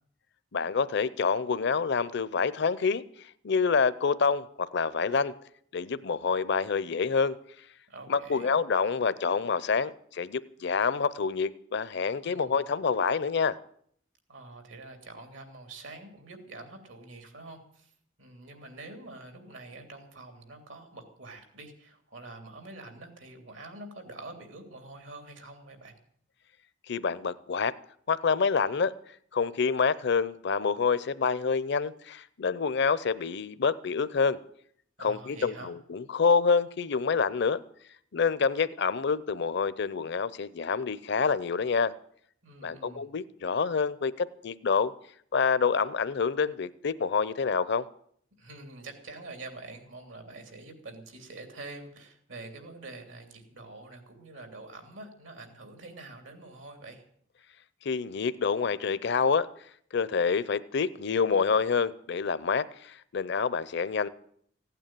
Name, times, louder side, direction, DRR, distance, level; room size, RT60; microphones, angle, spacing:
voice 1, 0.5-3.0 3.4-5.3 5.7-7.3 8.1-13.6 26.9-27.7 28.1-28.9 29.3-34.4 35.0-37.6 38.1-41.9 42.6-44.9 45.3-47.8 57.8-59.5 59.9-64.1, left 5 dB, 60° left, 17 dB, 0.6 m, -27 dB
voice 2, 7.9-8.5 12.2-12.6 14.3-17.9 18.2-26.0 35.0-35.7 42.4-43.1 48.4-57.0, right 2 dB, 85° right, 6 dB, 3.1 m, -46 dB
16.0 x 9.1 x 9.0 m, 0.64 s
head